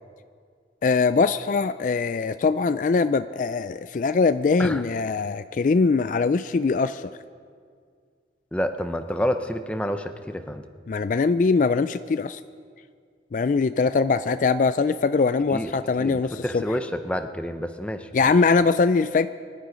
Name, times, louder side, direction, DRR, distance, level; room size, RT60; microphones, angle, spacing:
voice 1, 0.8-7.1 10.9-12.4 13.3-16.8 18.1-19.3, left 4 dB, 45° left, 12 dB, 0.3 m, -22 dB
voice 2, 8.5-10.6 15.5-15.7 16.0-18.1, equal, 5° left, 7 dB, 0.7 m, -28 dB
25.0 x 11.0 x 5.1 m, 2.1 s
head